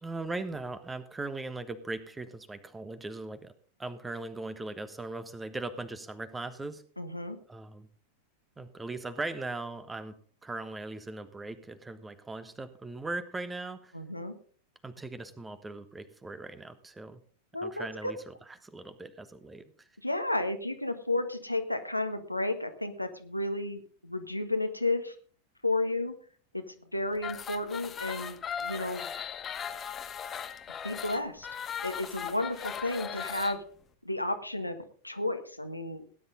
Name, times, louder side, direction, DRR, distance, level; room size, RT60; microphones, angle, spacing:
voice 1, 0.0-3.5 3.8-6.8 7.5-7.9 8.6-13.9 14.8-17.2 17.6-18.3 18.6-19.6, right 2 dB, 10° right, 11 dB, 1.4 m, -39 dB
voice 2, 7.0-7.4 13.9-14.3 17.5-18.1 20.0-25.1 25.6-26.1 26.5-29.1 30.8-31.5 31.8-33.6 34.0-34.8 35.0-36.0, left 2 dB, 90° left, 6 dB, 1.5 m, -32 dB
sound 1, 27.1-33.6, left 8 dB, 25° left, 1.2 m, -38 dB
17.5 x 10.5 x 3.9 m, 0.43 s
figure-of-eight pair, 90°, 0 cm